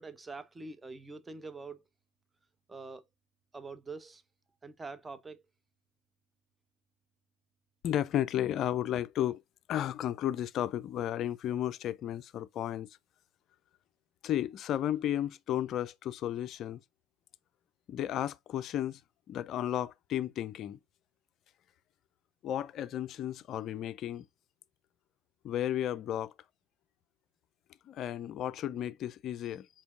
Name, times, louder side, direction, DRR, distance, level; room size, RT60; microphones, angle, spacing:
voice 1, 0.0-1.8 2.7-3.1 3.5-4.2 4.6-5.4, right 3 dB, 15° right, 0.6 m, -44 dB
voice 2, 7.8-9.4 9.7-13.0 14.2-16.8 17.9-19.0 19.3-20.8 22.4-24.3 25.4-26.3 27.9-29.7, left 11 dB, 40° left, 0.4 m, -33 dB
4.3 x 3.7 x 2.5 m
figure-of-eight pair, 80°, 0 cm